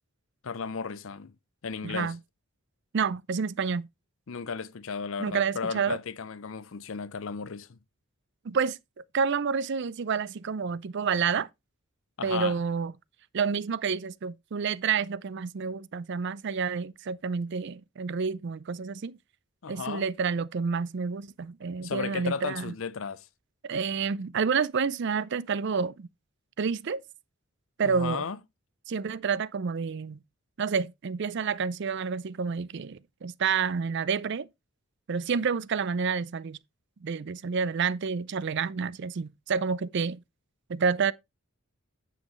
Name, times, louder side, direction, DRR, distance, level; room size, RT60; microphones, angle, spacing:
voice 1, 0.4-1.3 1.6-2.1 4.3-7.8 12.2-12.6 19.6-20.0 21.8-23.3 27.8-28.4, left 5 dB, 65° left, 0.6 m, -34 dB
voice 2, 1.8-2.2 2.9-3.9 5.2-6.0 8.4-8.8 9.1-11.5 12.2-12.9 13.3-19.2 19.7-22.7 23.6-26.1 26.6-27.0 27.8-28.2 28.9-30.2 30.6-34.5 35.1-36.6 37.0-40.2 40.7-41.1, right 5 dB, 55° right, 0.4 m, -29 dB
9.3 x 7.6 x 3.0 m
head